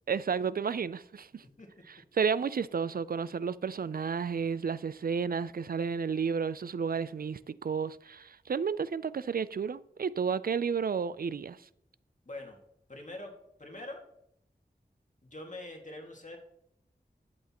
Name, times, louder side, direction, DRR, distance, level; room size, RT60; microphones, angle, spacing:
voice 1, 0.1-1.4 2.1-11.6, right 6 dB, 60° right, 0.4 m, -32 dB
voice 2, 12.3-12.6 12.9-14.0 15.2-16.4, left 2 dB, 45° left, 2.0 m, -44 dB
11.5 x 8.0 x 3.0 m
wide cardioid pair, 50°, 17 cm